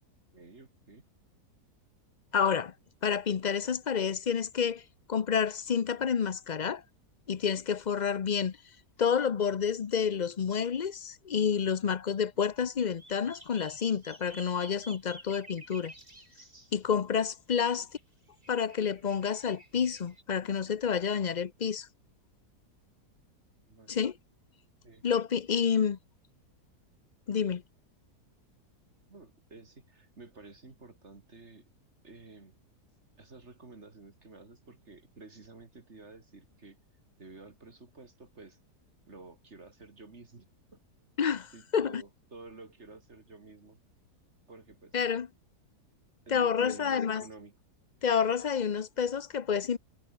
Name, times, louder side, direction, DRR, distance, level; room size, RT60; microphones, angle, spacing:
voice 1, 0.3-1.0 17.7-17.9 23.7-24.0 24.8-25.0 29.1-31.6 32.0-32.6 33.2-36.8 37.2-38.6 39.1-40.8 41.5-43.8 44.5-45.0 46.3-47.5, right 3 dB, 45° right, 3.0 m, -51 dB
voice 2, 2.3-2.7 3.0-4.8 5.1-6.8 7.3-8.6 9.0-15.9 16.7-17.9 18.5-21.9 23.9-24.2 25.0-26.0 27.3-27.6 41.2-42.0 44.9-45.3 46.3-47.2 48.0-49.8, left 7 dB, 45° left, 0.6 m, -29 dB
sound 1, 12.8-16.8 18.0-18.1 18.4-20.2, right 1 dB, 30° right, 6.1 m, -52 dB
omnidirectional pair, 1.7 m